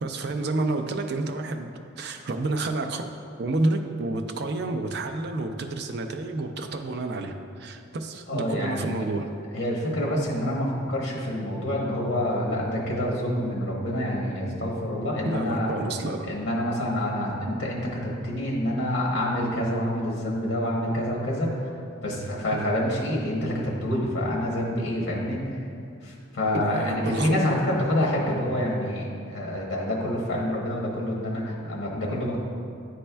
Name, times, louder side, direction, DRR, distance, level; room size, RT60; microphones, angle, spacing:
voice 1, 0.0-3.1 3.4-9.3 15.2-16.3 22.5-22.7 26.5-27.6, right 2 dB, 50° right, 5 dB, 0.4 m, -29 dB
voice 2, 8.3-9.1 9.5-15.7 16.2-21.6 22.0-25.4 26.0-32.4, left 1 dB, 55° left, -3 dB, 1.0 m, -27 dB
10.0 x 4.2 x 2.3 m, 2.4 s
head